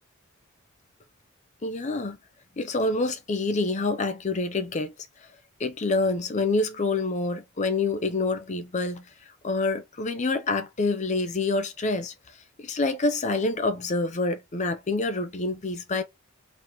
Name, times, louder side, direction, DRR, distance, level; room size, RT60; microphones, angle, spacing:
voice 1, 1.6-2.2 2.6-4.9 5.6-9.0 9.4-12.1 12.6-16.0, left 3 dB, 35° left, 0.5 m, -27 dB
4.1 x 2.8 x 2.9 m
head